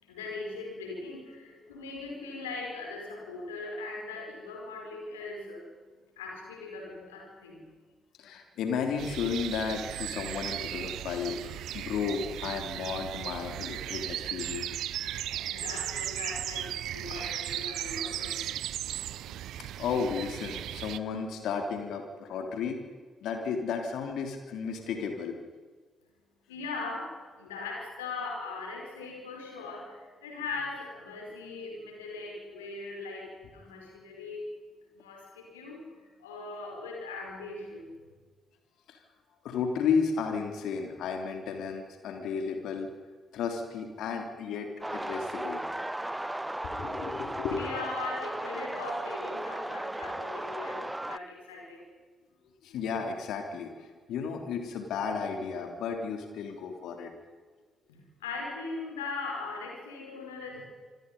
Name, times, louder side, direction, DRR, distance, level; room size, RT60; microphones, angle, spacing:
voice 1, 0.0-5.7 6.2-7.7 15.3-18.5 26.5-34.5 34.9-38.0 47.5-51.8 57.9-60.6, left 3 dB, 75° left, 0 dB, 5.3 m, -40 dB
voice 2, 8.2-14.7 19.3-22.8 23.2-25.4 38.9-39.0 39.4-42.9 43.3-45.7 46.7-47.6 52.6-53.7 54.1-57.1, left 6 dB, 60° left, 4 dB, 3.4 m, -33 dB
sound 1, 9.0-21.0, right 12 dB, 60° right, 0.6 m, -36 dB
sound 2, 44.8-51.2, right 1 dB, 10° right, 0.9 m, -36 dB
26.5 x 25.5 x 5.5 m, 1.5 s
figure-of-eight pair, 40°, 0 cm